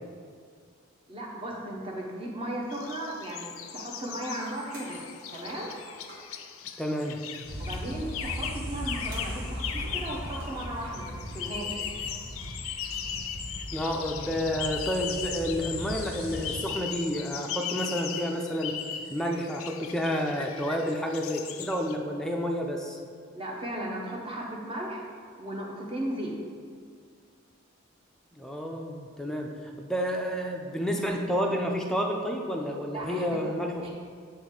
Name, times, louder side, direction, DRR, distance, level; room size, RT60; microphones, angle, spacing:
voice 1, 1.1-5.7 7.6-11.8 23.3-26.4 32.9-33.4 33.8-33.9, right 1 dB, 25° right, -2 dB, 0.8 m, -36 dB
sound 1, 2.7-21.9, left 8 dB, 85° left, 0.4 m, -38 dB
sound 2, 4.7-6.4 9.1-10.7 11.1-11.2 12.8-13.1, right 1 dB, 70° right, 1.4 m, -48 dB
voice 2, 6.8-7.2 13.7-18.8 19.1-23.0 28.3-33.9, equal, 5° left, 1 dB, 0.4 m, -30 dB
sound 3, 7.4-16.6, equal, 50° right, 1.3 m, -38 dB
8.2 x 3.1 x 3.7 m, 2.1 s
head